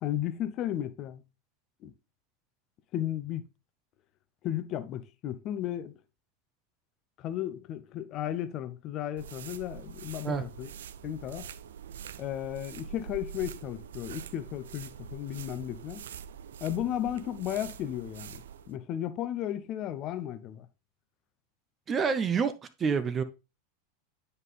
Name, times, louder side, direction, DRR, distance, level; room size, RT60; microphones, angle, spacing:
voice 1, 0.0-1.2 1.8-1.9 2.9-3.4 4.4-5.9 7.2-10.7 11.0-11.5 12.2-16.0 16.6-20.7, left 11 dB, 45° left, 0.6 m, -34 dB
sound 1, 9.2-18.7, right 8 dB, 70° right, 0.3 m, -44 dB
voice 2, 21.9-22.5 22.8-23.2, right 6 dB, 30° right, 0.6 m, -27 dB
9.0 x 4.1 x 3.5 m
hypercardioid pair, 90°, 0 cm